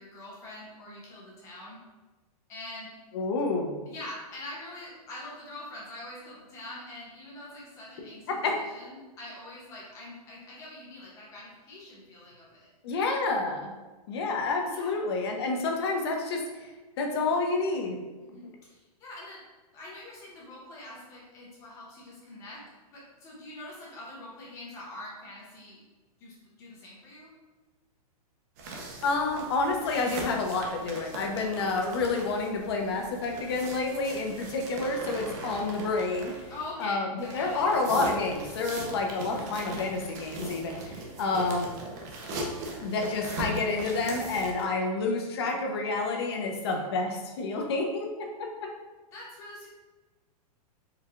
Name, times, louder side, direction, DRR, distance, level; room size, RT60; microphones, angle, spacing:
voice 1, 0.0-1.8 2.5-2.9 3.9-12.7 14.7-15.0 18.2-19.4 19.7-22.6 22.9-25.8 26.2-27.3 34.2-34.3 36.5-37.7 46.7-46.9 49.1-49.7, left 1 dB, 15° left, -5 dB, 0.9 m, -44 dB
voice 2, 3.1-3.8 8.4-8.6 12.8-13.7 14.1-16.7 17.0-18.0 29.0-36.3 36.8-41.7 42.8-48.7, left 3 dB, 40° left, 2 dB, 0.6 m, -29 dB
sound 1, 28.6-36.7 37.2-44.6, right 1 dB, 25° right, 0.5 m, -39 dB
4.6 x 2.3 x 3.6 m, 1.2 s
hypercardioid pair, 175°, 20 cm